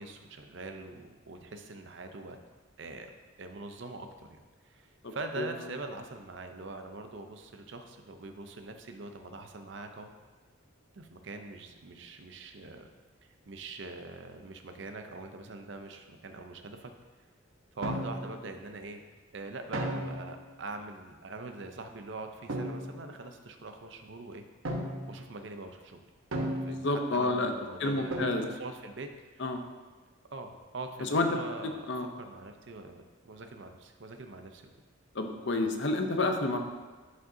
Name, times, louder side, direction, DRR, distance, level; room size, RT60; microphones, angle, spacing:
voice 1, 0.0-2.4 2.8-3.1 3.4-4.3 4.6-10.1 10.9-12.9 13.2-16.9 17.8-19.0 19.3-24.4 25.1-26.1 26.6-29.5 30.3-31.9 32.2-34.6, right 2 dB, 60° right, 6 dB, 0.6 m, -43 dB
voice 2, 5.0-5.5 26.5-27.5 27.8-28.4 29.4-29.6 31.0-31.4 31.9-32.1 35.1-36.6, left 2 dB, 55° left, 5 dB, 0.6 m, -29 dB
sound 1, 17.8-18.5 19.7-20.4 22.5-23.1 24.6-25.2 26.3-27.1 28.1-28.7, right 1 dB, 75° right, 0.9 m, -35 dB
11.0 x 5.2 x 2.7 m, 1.4 s
head